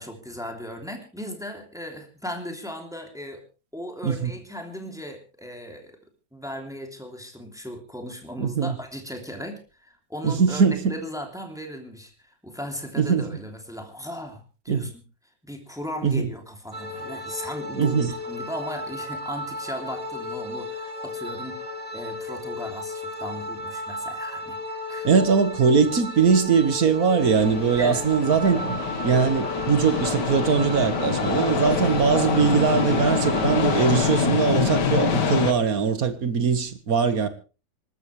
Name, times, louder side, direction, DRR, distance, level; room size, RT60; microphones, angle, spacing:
voice 1, 0.0-3.4 3.7-5.9 6.3-14.9 15.4-25.1 27.8-28.0, equal, ahead, 3.0 m, -37 dB
voice 2, 8.4-8.8 10.2-10.9 13.0-13.2 14.7-14.9 16.0-16.3 17.7-18.1 25.0-37.3, right 5 dB, 55° right, 1.9 m, -21 dB
sound 1, 16.7-34.2, left 2 dB, 20° right, 1.9 m, -34 dB
sound 2, 27.2-35.5, left 5 dB, 75° left, 2.2 m, -25 dB
26.5 x 13.0 x 3.3 m
omnidirectional pair, 1.8 m